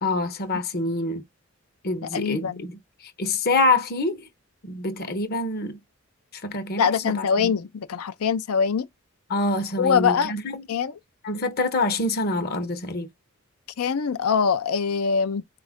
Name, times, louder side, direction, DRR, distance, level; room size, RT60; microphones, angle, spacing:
voice 1, 0.0-1.2 1.8-4.3 4.6-5.8 6.3-7.5 9.3-10.6 11.2-13.1, left 2 dB, 45° left, 0.8 m, -26 dB
voice 2, 2.1-2.6 6.8-8.9 9.8-10.3 10.7-11.0 13.8-15.4, left 6 dB, 75° left, 0.5 m, -23 dB
4.1 x 2.4 x 3.5 m
head